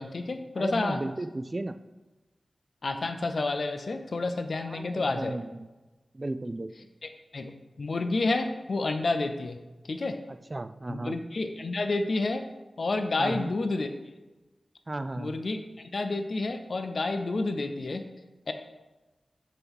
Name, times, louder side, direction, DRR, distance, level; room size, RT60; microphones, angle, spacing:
voice 1, 0.0-1.0 2.8-5.3 7.0-7.5 7.8-9.6 9.8-10.2 10.9-12.4 12.8-13.9 15.2-18.1 18.5-18.6, left 3 dB, 65° left, 7 dB, 0.5 m, -30 dB
voice 2, 0.6-1.7 4.7-5.7 6.1-6.7 10.5-11.2 13.2-13.5 14.9-15.4, right 2 dB, 35° right, 11 dB, 0.3 m, -34 dB
6.7 x 3.0 x 5.5 m, 1.1 s
wide cardioid pair, 65°, 0 cm